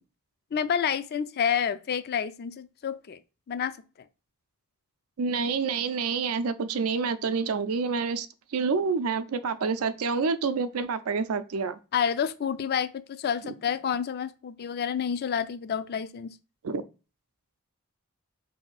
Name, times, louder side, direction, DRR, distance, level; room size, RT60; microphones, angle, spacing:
voice 1, 0.5-3.2 3.5-3.8 11.9-16.3, left 7 dB, 50° left, 0.4 m, -29 dB
voice 2, 5.2-8.3 8.5-11.8 16.6-16.8, right 5 dB, 80° right, 0.5 m, -28 dB
4.3 x 2.7 x 4.0 m
head